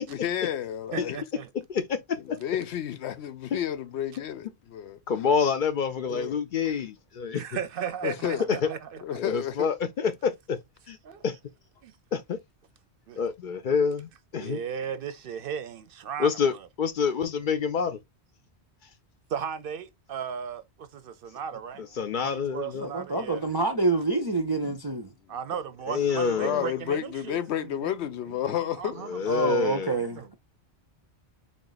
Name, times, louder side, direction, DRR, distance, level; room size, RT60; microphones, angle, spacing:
voice 1, 0.0-1.2 2.4-5.0 6.1-6.4 6.7-6.8 8.0-8.4 9.0-9.7 26.4-29.0, left 10 dB, 85° left, 0.9 m, -31 dB
voice 2, 0.9-1.5 7.3-9.2 10.0-10.1 11.0-11.2 11.8-12.0 13.1-13.2 14.4-16.7 19.3-23.4 25.3-28.0 28.3-30.3, right 8 dB, 65° right, 0.7 m, -36 dB
voice 3, 1.7-2.4 3.5-3.6 5.1-7.4 8.5-8.7 9.2-10.6 10.9-11.0 11.2-11.4 12.1-12.4 13.2-14.6 16.2-18.0 21.8-22.9 24.6-24.8 25.9-26.7 29.0-29.9, left 6 dB, 60° left, 0.6 m, -27 dB
voice 4, 22.8-25.1 29.3-30.3, right 3 dB, 35° right, 0.4 m, -27 dB
3.7 x 2.4 x 3.9 m
omnidirectional pair, 1.1 m